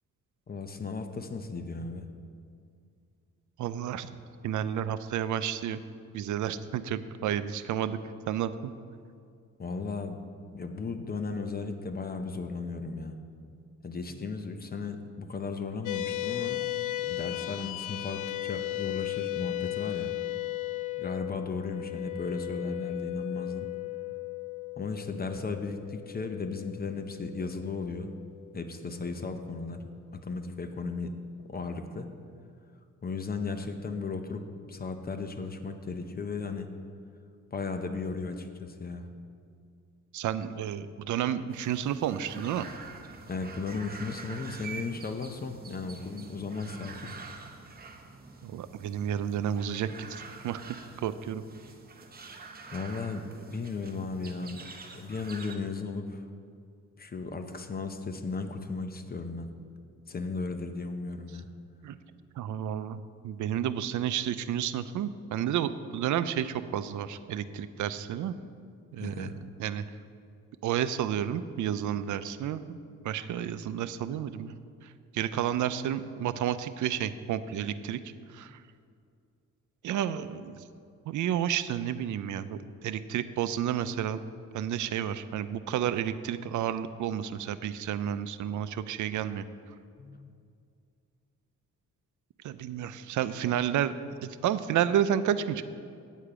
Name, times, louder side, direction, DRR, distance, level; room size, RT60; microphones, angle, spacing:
voice 1, 0.5-2.1 9.6-10.2 10.5-13.2 13.8-16.7 17.1-20.1 21.0-23.7 24.8-28.1 28.5-31.1 31.5-32.1 33.0-36.7 37.5-39.1 43.3-47.1 52.7-54.6 54.9-56.3 57.0-59.5 60.1-61.5 69.0-69.3 90.0-90.3, left 4 dB, 30° left, 7 dB, 0.7 m, -35 dB
voice 2, 3.6-4.1 4.4-5.8 6.1-8.0 8.3-8.7 40.1-42.7 48.4-50.1 50.4-50.6 51.0-51.4 61.8-62.0 62.4-68.3 68.9-69.8 70.6-74.5 75.1-78.0 78.3-78.6 79.8-80.6 81.1-82.6 82.8-84.2 84.5-89.5 92.4-93.9 94.2-95.6, right 10 dB, 75° right, 13 dB, 0.5 m, -31 dB
sound 1, 15.9-28.5, left 19 dB, 80° left, 0.5 m, -36 dB
sound 2, 41.5-55.5, right 4 dB, 30° right, 0.8 m, -46 dB
9.1 x 8.5 x 4.9 m, 2.3 s
cardioid pair, 125°, 30 cm